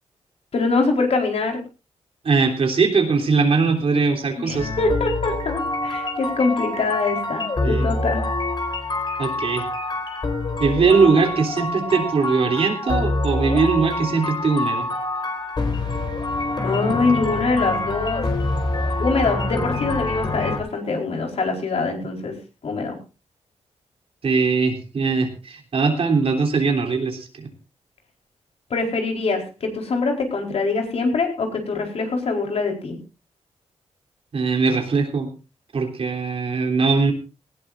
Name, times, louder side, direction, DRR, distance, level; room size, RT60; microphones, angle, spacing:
voice 1, 0.5-1.6 4.4-8.2 16.6-18.2 18.7-22.3 22.6-23.0 28.7-33.0, left 3 dB, 65° left, 2 dB, 4.5 m, -24 dB
voice 2, 2.2-4.7 7.6-7.9 9.2-9.6 10.6-14.9 24.2-27.5 34.3-35.3 35.7-37.1, right 4 dB, 60° right, 3 dB, 3.4 m, -20 dB
sound 1, 4.6-20.6, left 2 dB, 40° left, 4.1 m, -26 dB
18.5 x 17.0 x 2.6 m, 0.31 s
wide cardioid pair, 115°, 11 cm